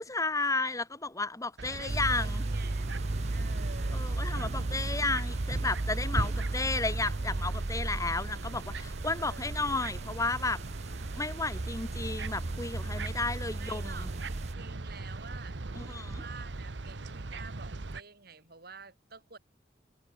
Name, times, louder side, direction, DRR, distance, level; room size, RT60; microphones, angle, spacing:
voice 1, 0.0-2.4 3.9-10.6 11.1-14.1 15.8-16.2, left 3 dB, 20° left, 2.4 m, -33 dB
sound 1, 1.6-18.0, right 3 dB, 90° right, 1.0 m, -40 dB
voice 2, 1.7-3.0 3.3-4.1 9.2-9.6 13.6-15.6 15.9-19.4, right 5 dB, 60° right, 7.8 m, -49 dB
sound 2, 1.9-14.5, right 2 dB, 40° right, 0.7 m, -35 dB
head